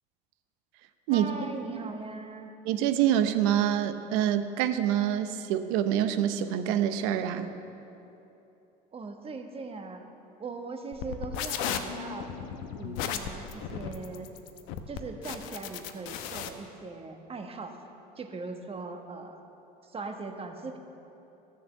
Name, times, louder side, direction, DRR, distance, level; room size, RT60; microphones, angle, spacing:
voice 1, 1.1-2.5 8.9-10.0 10.4-12.3 12.8-14.3 14.9-17.8 18.2-19.4 19.8-20.8, right 3 dB, 25° right, 5 dB, 1.4 m, -40 dB
voice 2, 2.7-7.5, right 10 dB, 70° right, 10 dB, 0.8 m, -26 dB
sound 1, 10.9-16.5, left 9 dB, 70° left, 0.9 m, -35 dB
13.0 x 7.2 x 7.2 m, 3.0 s
supercardioid pair, 85°, 21 cm